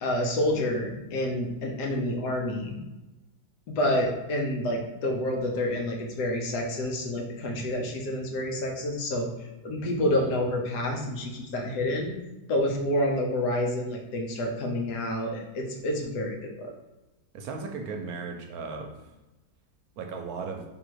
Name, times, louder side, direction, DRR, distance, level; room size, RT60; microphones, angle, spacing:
voice 1, 0.0-2.7 3.7-12.2 12.5-16.7, left 1 dB, 75° left, 0 dB, 1.4 m, -28 dB
voice 2, 17.3-18.9 20.0-20.6, right 4 dB, 75° right, 3 dB, 1.0 m, -36 dB
3.8 x 2.8 x 4.4 m, 1.0 s
omnidirectional pair, 1.7 m